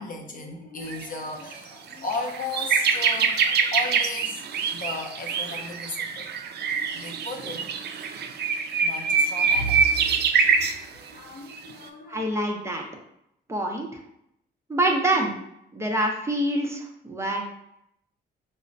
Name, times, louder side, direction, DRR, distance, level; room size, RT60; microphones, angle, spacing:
voice 1, 0.0-4.5 4.7-6.3 6.9-7.7 8.8-10.0 10.4-10.6 10.9-12.3, left 2 dB, 45° left, 2 dB, 0.6 m, -35 dB
sound 1, 0.9-1.0 1.5-1.6 1.9-10.8 11.5-11.7, right 6 dB, 55° right, 0.4 m, -24 dB
voice 2, 12.1-12.8 13.5-13.9 14.7-15.3 15.7-17.5, right 1 dB, 15° right, 0 dB, 0.7 m, -25 dB
5.0 x 2.1 x 2.6 m, 0.77 s
cardioid pair, 90°, 20 cm